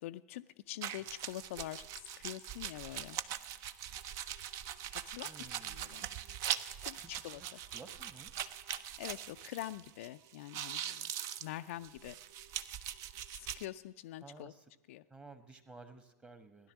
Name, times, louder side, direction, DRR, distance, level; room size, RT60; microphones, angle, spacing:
voice 1, 0.0-3.2 5.0-6.1 6.8-7.0 7.2-7.6 9.0-11.1 11.4-12.2 13.3-14.5 14.9-15.0, left 15 dB, 50° left, 10 dB, 0.4 m, -45 dB
sound 1, 0.8-10.1 10.3-13.7, right 10 dB, 35° right, 0.6 m, -42 dB
voice 2, 5.2-5.8 6.9-7.5 7.7-8.3 14.2-14.6 15.1-16.7, right 3 dB, 10° right, 10 dB, 1.2 m, -54 dB
16.0 x 11.0 x 7.1 m, 1.1 s
figure-of-eight pair, 95°, 9 cm